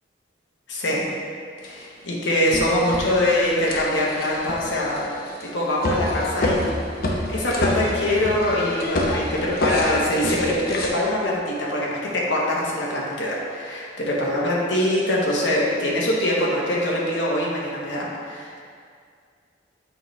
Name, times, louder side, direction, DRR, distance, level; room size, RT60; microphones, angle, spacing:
voice 1, 0.7-1.0 1.6-5.1 5.4-18.6, left 1 dB, 80° left, -4 dB, 1.1 m, -23 dB
sound 1, 1.6-1.7 2.3-10.9, left 1 dB, 55° left, 0.8 m, -27 dB
8.0 x 4.8 x 3.2 m, 2.2 s
head